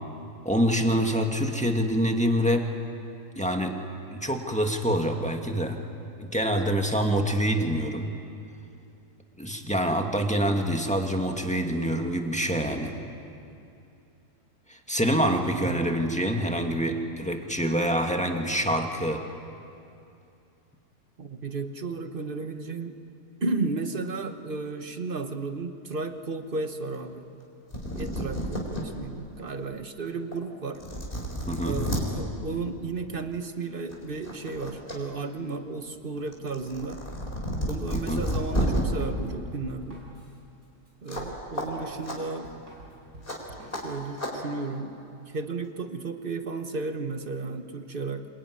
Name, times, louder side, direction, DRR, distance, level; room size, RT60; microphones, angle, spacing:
voice 1, 0.5-2.7 3.4-3.7 4.1-5.8 6.2-8.1 9.4-12.9 14.7-19.2 31.5-31.8 37.9-38.2, equal, 5° left, 3 dB, 1.7 m, -26 dB
voice 2, 15.6-15.9 21.2-23.0 23.4-27.3 28.0-30.8 31.6-37.0 37.7-40.0 41.0-42.5 43.8-44.9 45.3-48.3, right 3 dB, 35° right, 8 dB, 1.3 m, -33 dB
sound 1, 27.4-27.5 27.7-28.8 29.4-29.5 30.3-30.4 30.7-32.0 33.3-33.5 33.9-35.0 35.3-38.8 41.1-41.3 41.6-41.7 42.0-42.2 43.3-43.4 43.7-43.8 44.2-44.3, equal, 30° left, 4.4 m, -31 dB
Drum kit, 37.6-44.1, right 1 dB, 65° right, 6.2 m, -49 dB
27.0 x 20.5 x 9.6 m, 2.6 s
omnidirectional pair, 1.8 m